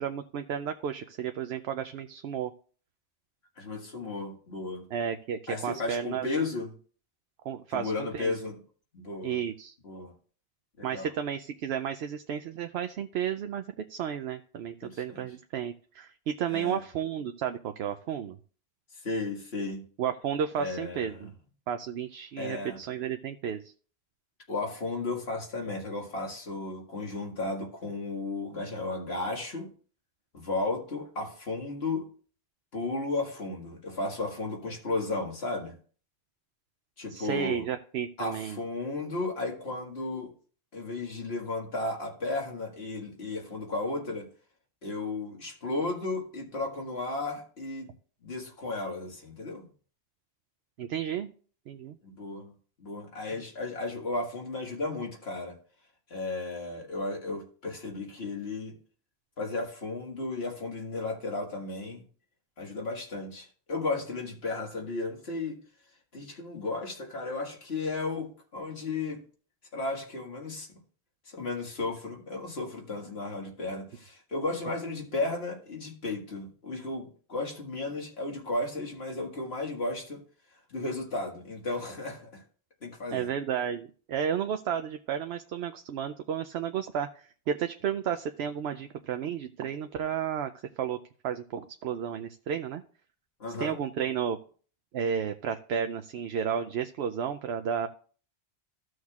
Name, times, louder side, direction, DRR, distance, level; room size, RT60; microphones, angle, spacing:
voice 1, 0.0-2.5 4.9-6.3 7.4-8.4 9.2-9.7 10.8-18.4 20.0-21.3 21.7-23.7 37.1-38.6 50.8-51.3 51.7-52.0 83.1-90.5 90.8-91.0 91.2-92.8 93.6-94.4 94.9-97.9, right 8 dB, 80° right, 7 dB, 0.8 m, -32 dB
voice 2, 3.6-4.9 5.5-6.7 7.7-8.6 8.9-9.4 9.8-10.1 10.8-11.1 14.8-15.2 16.5-16.8 19.0-19.8 20.6-21.3 22.4-22.8 24.5-29.7 30.3-32.1 32.7-35.8 37.0-37.7 38.2-40.3 40.7-44.3 44.8-47.9 48.2-49.7 52.0-52.5 52.8-55.6 56.1-58.8 59.4-62.0 62.6-65.6 66.1-69.2 69.7-70.7 71.3-80.2 80.7-82.4 82.8-83.3 93.4-93.8, left 2 dB, 75° left, 1 dB, 2.0 m, -34 dB
14.5 x 6.3 x 2.4 m, 0.42 s
omnidirectional pair, 1.1 m